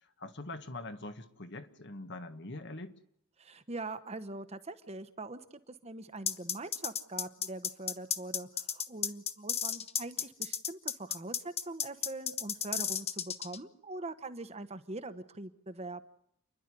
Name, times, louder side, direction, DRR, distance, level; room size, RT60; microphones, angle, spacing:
voice 1, 0.2-2.9, left 2 dB, 55° left, 9 dB, 1.6 m, -43 dB
voice 2, 3.4-5.4 5.7-16.0, right 2 dB, 30° right, 11 dB, 1.1 m, -43 dB
sound 1, 6.3-13.6, left 8 dB, 30° left, 0.8 m, -33 dB
28.5 x 11.0 x 9.9 m, 0.72 s
head